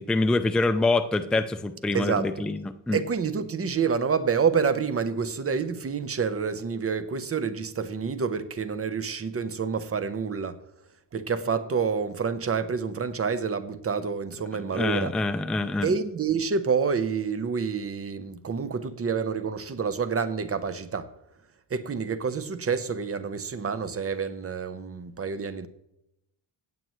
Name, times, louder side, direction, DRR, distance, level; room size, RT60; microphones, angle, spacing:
voice 1, 0.1-3.0 14.7-15.9, left 2 dB, ahead, 0.4 m, -25 dB
voice 2, 1.9-2.3 2.9-10.6 11.1-15.1 15.8-21.1 21.7-25.7, right 6 dB, 30° right, 0.9 m, -28 dB
16.5 x 7.8 x 3.1 m
cardioid pair, 130°, 45 cm